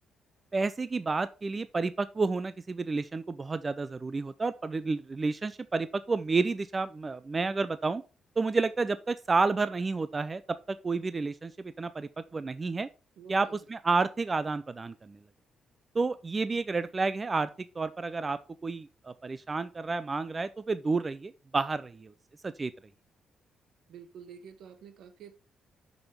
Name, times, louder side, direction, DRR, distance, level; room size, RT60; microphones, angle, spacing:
voice 1, 0.5-8.0 8.4-10.4 10.7-12.9 13.3-15.2 15.9-17.5 17.8-22.1 22.4-22.7, right 3 dB, 20° right, 0.4 m, -30 dB
voice 2, 13.2-13.6 23.9-25.4, right 7 dB, 65° right, 1.0 m, -49 dB
6.8 x 6.2 x 6.7 m
cardioid pair, 175°, 0 cm